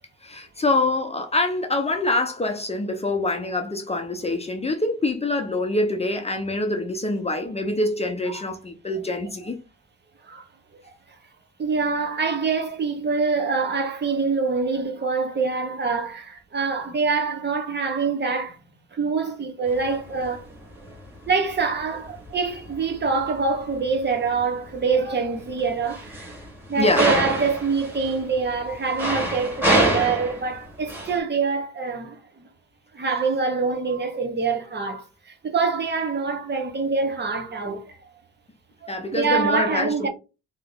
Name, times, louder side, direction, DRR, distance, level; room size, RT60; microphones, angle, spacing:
voice 1, 0.2-9.6 26.8-27.1 38.9-40.1, left 2 dB, 20° left, 0.8 m, -25 dB
voice 2, 11.6-18.6 18.9-20.5 21.3-26.3 26.7-32.2 32.9-35.0 35.4-37.9 38.8-40.1, right 4 dB, 35° right, 1.0 m, -25 dB
sound 1, 19.7-31.2, right 1 dB, 5° right, 1.5 m, -28 dB
3.2 x 2.9 x 3.7 m
cardioid pair, 90°, 30 cm